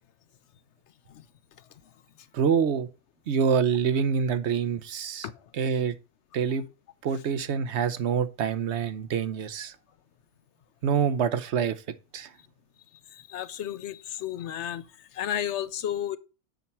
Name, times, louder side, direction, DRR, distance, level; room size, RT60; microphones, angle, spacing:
voice 1, 2.3-2.9 3.3-5.3 5.6-6.0 6.3-6.6 7.0-9.7 10.8-11.8 12.1-12.3, right 7 dB, 70° right, 1.0 m, -26 dB
voice 2, 13.1-16.2, left 10 dB, 75° left, 0.9 m, -33 dB
7.8 x 5.9 x 4.3 m
omnidirectional pair, 1.2 m